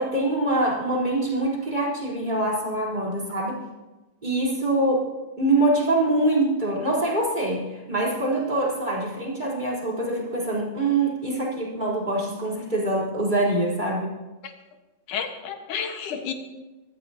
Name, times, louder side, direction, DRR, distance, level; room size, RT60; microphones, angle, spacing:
voice 1, 0.0-3.6 4.2-14.2, right 2 dB, 15° right, -5 dB, 3.9 m, -24 dB
voice 2, 15.1-16.3, left 7 dB, 80° left, 5 dB, 2.9 m, -31 dB
23.0 x 14.0 x 2.9 m, 1.2 s
omnidirectional pair, 3.6 m